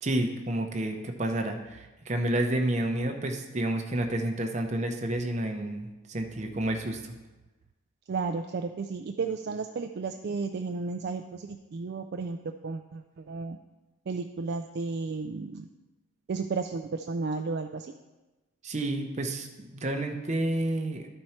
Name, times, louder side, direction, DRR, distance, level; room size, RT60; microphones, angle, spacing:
voice 1, 0.0-7.1 18.6-21.1, right 1 dB, 30° right, 3 dB, 0.7 m, -30 dB
voice 2, 8.1-13.6 14.1-15.7 16.3-17.9, right 4 dB, 50° right, 5 dB, 0.3 m, -33 dB
12.0 x 4.4 x 4.3 m, 1.1 s
head